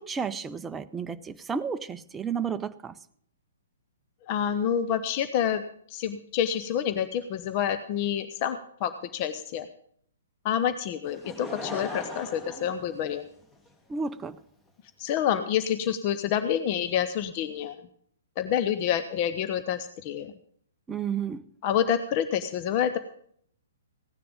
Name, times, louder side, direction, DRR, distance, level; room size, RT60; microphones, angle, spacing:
voice 1, 0.0-2.9 13.9-14.4 20.9-21.4, right 6 dB, 10° right, 11 dB, 0.6 m, -32 dB
voice 2, 4.3-5.6 5.9-9.7 10.4-13.2 15.0-17.8 18.4-20.3 21.6-23.0, left 9 dB, 35° left, 10 dB, 0.8 m, -28 dB
Laughter / Crowd, 11.1-13.7 14.4-14.5, left 2 dB, 10° left, 1.5 m, -38 dB
16.5 x 10.0 x 5.2 m, 0.63 s
figure-of-eight pair, 120°, 0 cm